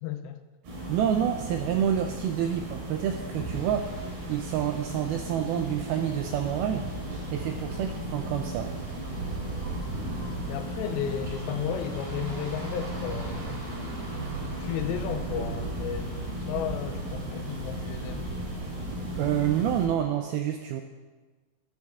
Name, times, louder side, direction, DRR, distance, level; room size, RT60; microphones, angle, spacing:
voice 1, 0.0-0.4 7.7-8.0 10.5-18.3, left 9 dB, 85° left, 9 dB, 2.9 m, -34 dB
sound 1, 0.6-19.9, right 1 dB, 65° right, 4.8 m, -36 dB
voice 2, 0.9-4.0 4.3-6.9 7.3-8.7 19.2-20.8, right 9 dB, 85° right, 5 dB, 2.2 m, -28 dB
sound 2, 3.5-19.8, right 1 dB, 40° right, 1.9 m, -41 dB
13.0 x 10.5 x 3.6 m, 1.3 s
omnidirectional pair, 4.9 m